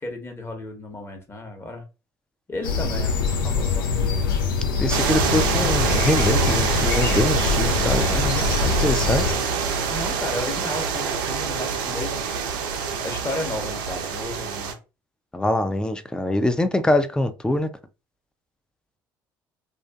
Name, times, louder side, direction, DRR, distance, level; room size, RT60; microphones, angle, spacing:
voice 1, 0.0-1.8 2.5-3.9 9.3-9.6 9.9-12.2 13.0-14.7, left 2 dB, 20° left, 1.0 m, -33 dB
sound 1, 2.6-9.3, left 5 dB, 80° left, 0.4 m, -24 dB
voice 2, 4.8-9.4 15.3-17.7, left 1 dB, 5° left, 0.4 m, -24 dB
sound 2, 4.9-14.7, right 6 dB, 75° right, 0.5 m, -25 dB
2.5 x 2.4 x 2.3 m
hypercardioid pair, 60°, 11 cm